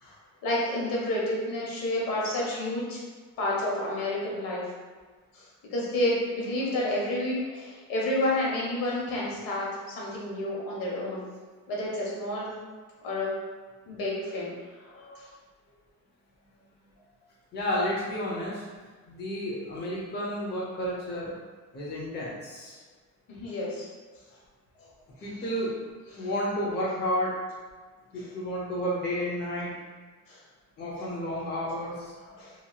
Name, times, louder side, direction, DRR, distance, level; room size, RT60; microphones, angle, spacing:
voice 1, 0.4-3.0 3.4-4.7 5.3-5.5 5.7-11.3 11.7-12.5 13.0-13.3 13.9-14.5 14.8-15.3 23.4-23.9 25.2-25.4 26.1-26.3 28.2-28.3 30.3-30.4 32.3-32.5, left 1 dB, 80° left, -4 dB, 1.0 m, -30 dB
voice 2, 17.5-18.6 19.1-21.3 21.7-22.8 25.2-25.7 26.1-27.3 28.1-29.7 30.8-32.4, equal, 30° left, -5 dB, 0.7 m, -31 dB
2.9 x 2.8 x 2.3 m, 1.4 s
cardioid pair, 145°, 34 cm